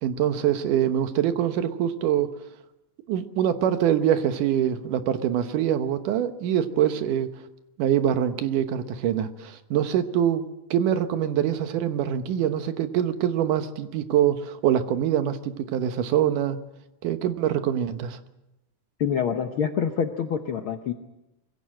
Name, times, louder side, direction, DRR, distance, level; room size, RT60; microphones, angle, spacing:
voice 1, 0.0-2.3 3.1-7.3 7.8-16.6 17.0-18.2, right 10 dB, 85° right, 10 dB, 2.7 m, -24 dB
voice 2, 19.0-20.9, left 7 dB, 70° left, 6 dB, 1.3 m, -26 dB
23.5 x 16.0 x 7.6 m, 0.94 s
omnidirectional pair, 3.6 m